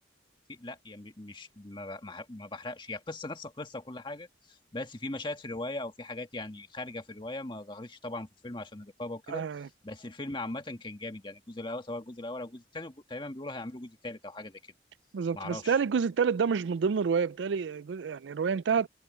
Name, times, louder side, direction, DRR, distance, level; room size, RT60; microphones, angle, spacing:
voice 1, 0.5-9.5 9.8-14.6 15.3-15.8, left 2 dB, 25° left, 1.7 m, -39 dB
voice 2, 9.3-9.7 15.1-18.9, right 6 dB, 85° right, 0.4 m, -28 dB
head